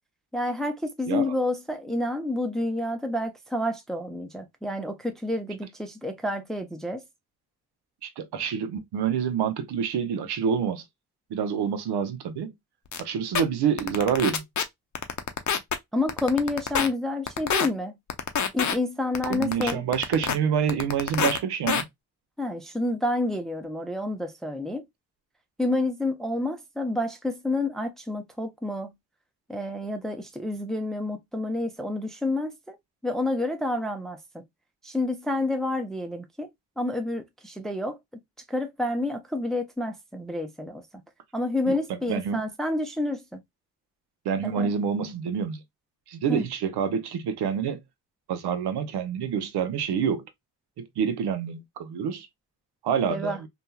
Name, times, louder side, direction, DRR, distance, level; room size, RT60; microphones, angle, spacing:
voice 1, 0.3-7.0 15.9-18.0 18.5-19.8 22.4-24.8 25.6-28.9 29.5-32.8 33.0-34.2 34.8-36.5 36.8-38.0 38.5-40.8 41.3-43.4 44.4-44.7 46.3-46.5 53.1-53.4, left 2 dB, ahead, 0.6 m, -29 dB
voice 2, 8.0-10.8 11.3-12.5 13.0-14.4 19.3-21.8 41.7-41.8 42.1-42.4 44.2-45.6 46.1-47.8 48.3-50.2 50.8-52.3 52.8-53.5, right 7 dB, 70° right, 0.7 m, -27 dB
sound 1, 12.9-13.0 13.3-13.4 13.8-14.6 14.9-15.7 16.1-16.9 17.3-17.7 18.1-18.7 19.1-20.3 20.7-21.4 21.7-21.8, left 7 dB, 45° left, 0.7 m, -25 dB
2.8 x 2.3 x 2.2 m
hypercardioid pair, 40°, 41 cm